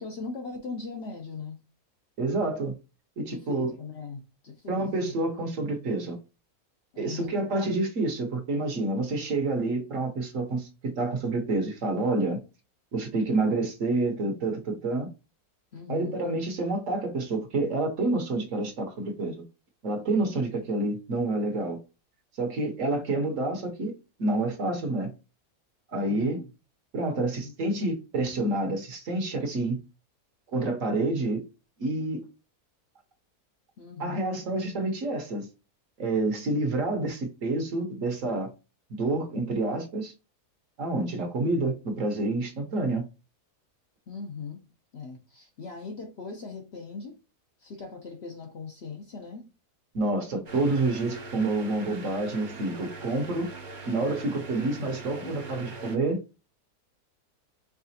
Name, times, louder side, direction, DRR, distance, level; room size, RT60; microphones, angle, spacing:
voice 1, 0.0-1.6 3.3-5.1 6.9-7.4 15.7-16.2 26.1-26.5 27.1-27.5 33.8-34.3 44.1-44.7 44.9-47.2 47.6-49.5 54.9-55.4, left 4 dB, 55° left, 0.8 m, -40 dB
voice 2, 2.2-2.7 3.2-3.7 4.7-6.2 7.0-12.4 12.9-15.1 15.9-19.4 19.8-21.8 22.4-23.9 24.2-25.1 25.9-26.4 26.9-29.8 30.5-31.4 31.8-32.2 34.0-35.5 36.0-38.5 39.0-40.1 40.8-43.0 49.9-53.5 53.9-56.2, right 2 dB, 60° right, 1.1 m, -28 dB
sound 1, 50.5-56.0, right 3 dB, 45° right, 0.7 m, -42 dB
4.9 x 3.5 x 2.7 m
omnidirectional pair, 1.6 m